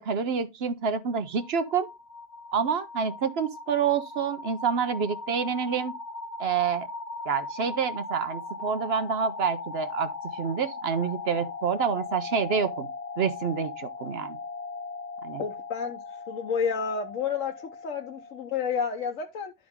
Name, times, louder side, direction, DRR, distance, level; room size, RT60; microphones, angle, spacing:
voice 1, 0.0-1.9 2.5-5.9 6.4-6.9 7.3-12.9 13.2-14.4 15.2-15.4, right 6 dB, 60° right, 0.9 m, -28 dB
sound 1, 1.1-18.8, left 3 dB, 40° left, 0.8 m, -39 dB
voice 2, 15.4-19.5, left 6 dB, 85° left, 1.3 m, -30 dB
11.5 x 5.1 x 3.6 m
omnidirectional pair, 1.3 m